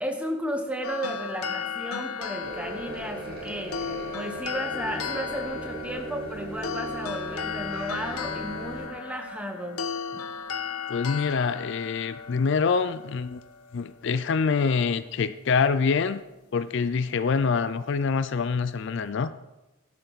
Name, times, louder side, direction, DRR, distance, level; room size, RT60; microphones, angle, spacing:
voice 1, 0.0-3.8 4.1-9.8, equal, 5° right, 5 dB, 1.0 m, -34 dB
sound 1, 0.8-14.1, left 6 dB, 90° left, 0.8 m, -35 dB
sound 2, 2.4-8.9, right 2 dB, 45° right, 1.8 m, -38 dB
voice 2, 10.9-13.4 13.7-16.2 16.5-19.3, left 5 dB, 55° left, 14 dB, 0.4 m, -25 dB
12.0 x 11.0 x 4.0 m, 1.1 s
head